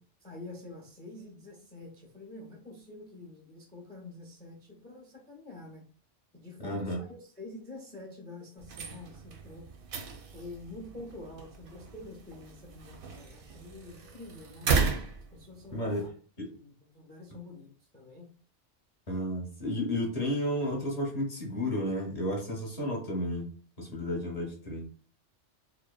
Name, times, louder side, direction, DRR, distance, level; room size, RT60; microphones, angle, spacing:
voice 1, 0.2-5.9 6.3-9.7 10.3-14.7 15.3-16.1 16.5-17.7 17.9-18.3, left 2 dB, 15° left, 0 dB, 0.3 m, -47 dB
voice 2, 6.6-7.0 15.7-16.1 16.4-16.5 19.1-23.5 23.8-24.9, left 1 dB, 40° left, -1 dB, 0.7 m, -32 dB
sound 1, 8.6-16.1, right 4 dB, 60° right, 0.6 m, -35 dB
2.9 x 2.0 x 2.2 m, 0.43 s
omnidirectional pair, 1.2 m